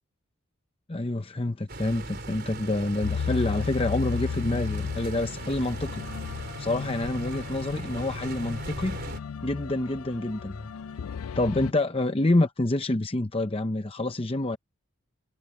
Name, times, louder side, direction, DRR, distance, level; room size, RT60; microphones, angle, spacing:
voice 1, 0.9-6.0 6.6-9.0 9.4-10.7 11.3-14.6, left 2 dB, 25° left, 0.7 m, -27 dB
sound 1, 1.7-9.2, right 2 dB, 45° right, 4.2 m, -39 dB
sound 2, 3.0-11.7, left 6 dB, 85° left, 0.4 m, -34 dB
head